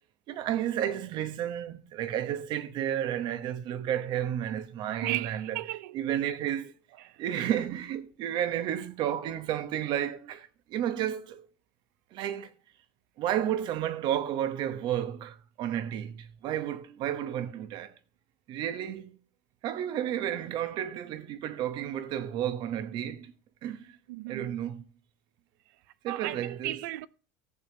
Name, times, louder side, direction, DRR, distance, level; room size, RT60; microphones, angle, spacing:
voice 1, 0.3-5.6 5.9-6.7 7.2-11.5 12.1-12.5 13.2-17.9 18.5-19.2 19.6-23.3 23.6-24.0 24.3-24.8 26.0-26.8, right 10 dB, 50° right, 0.9 m, -32 dB
voice 2, 5.0-6.0 7.0-7.2 24.1-24.6 26.1-27.1, right 17 dB, 80° right, 0.5 m, -35 dB
15.5 x 7.0 x 2.8 m
supercardioid pair, 110°, 10 cm